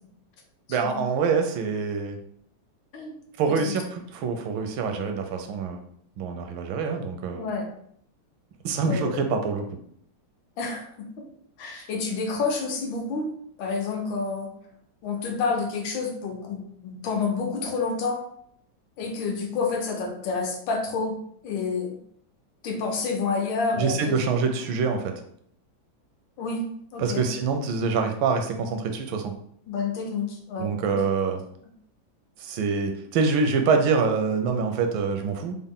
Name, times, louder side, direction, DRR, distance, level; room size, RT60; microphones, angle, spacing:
voice 1, 0.7-2.2 3.4-5.8 6.2-7.4 8.6-9.6 23.8-25.1 27.0-29.3 30.6-31.4 32.4-35.6, right 5 dB, 85° right, 5 dB, 1.4 m, -25 dB
voice 2, 7.3-7.7 8.8-9.1 10.6-11.1 11.6-13.3 13.6-14.5 15.0-18.2 19.0-21.2 21.4-22.0 22.6-24.1 26.4-27.3 29.7-31.1, left 4 dB, 80° left, 2 dB, 1.5 m, -29 dB
4.1 x 2.0 x 3.6 m, 0.66 s
omnidirectional pair, 2.1 m